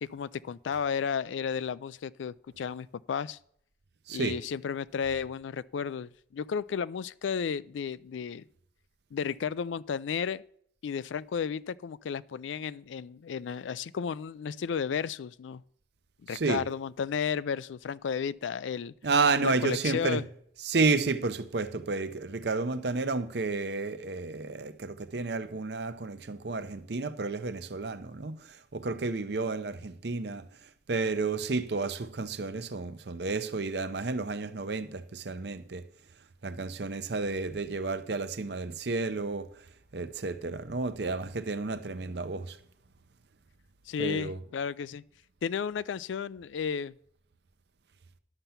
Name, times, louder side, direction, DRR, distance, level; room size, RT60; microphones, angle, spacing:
voice 1, 0.0-3.4 4.1-8.4 9.1-10.4 10.8-15.6 16.2-18.9 19.4-20.2 43.9-45.0 45.4-46.9, left 6 dB, 90° left, 0.4 m, -33 dB
voice 2, 4.1-4.4 16.3-16.6 19.0-20.2 20.6-30.5 30.9-35.8 36.4-39.5 39.9-42.6 44.0-44.4, right 3 dB, 65° right, 0.7 m, -31 dB
11.0 x 6.8 x 5.7 m
head